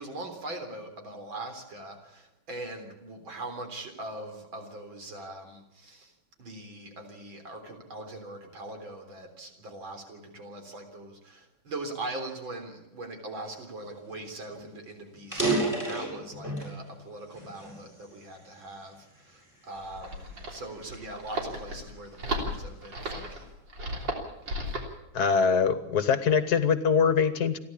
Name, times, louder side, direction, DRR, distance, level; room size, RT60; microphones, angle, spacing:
voice 1, 0.0-6.1 6.4-23.5, right 2 dB, 85° right, 5 dB, 4.4 m, -41 dB
sound 1, 14.1-14.2 14.5-14.7 15.2-16.8 17.3-18.6 19.2-19.4 20.1-22.1, right 2 dB, 10° right, 8.1 m, -31 dB
sound 2, 19.8-24.9, right 1 dB, 65° right, 4.1 m, -35 dB
voice 2, 25.1-27.6, left 6 dB, 60° left, 13 dB, 1.5 m, -23 dB
29.0 x 11.5 x 8.6 m, 0.88 s
omnidirectional pair, 2.1 m